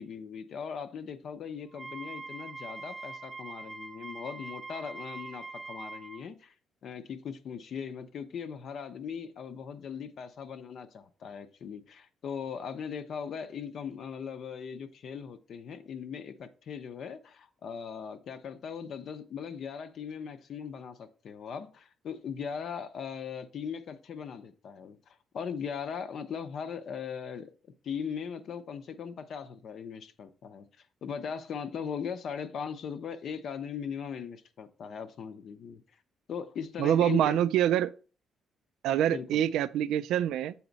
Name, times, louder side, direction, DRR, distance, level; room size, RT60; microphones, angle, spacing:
voice 1, 0.0-6.5 6.8-30.7 31.0-35.8 36.3-37.4 39.1-39.4, left 7 dB, 50° left, 0.6 m, -39 dB
Wind instrument woodwind instrument, 1.7-6.2, right 3 dB, 25° right, 0.5 m, -43 dB
voice 2, 36.8-37.9 38.8-40.5, right 11 dB, 90° right, 0.3 m, -25 dB
7.1 x 4.2 x 3.9 m
cardioid pair, 155°, 0 cm